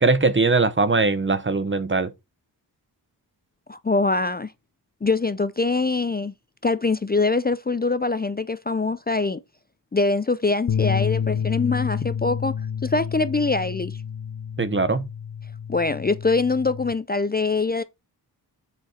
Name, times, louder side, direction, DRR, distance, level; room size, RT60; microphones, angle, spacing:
voice 1, 0.0-2.1 14.6-15.1, right 3 dB, 30° right, 0.9 m, -21 dB
voice 2, 3.7-4.5 5.0-6.3 6.6-9.4 9.9-12.6 12.8-14.0 15.7-17.8, left 3 dB, 25° left, 0.5 m, -23 dB
sound 1, 10.7-16.9, left 7 dB, 50° left, 0.8 m, -29 dB
7.8 x 6.2 x 4.3 m
wide cardioid pair, 90°, 41 cm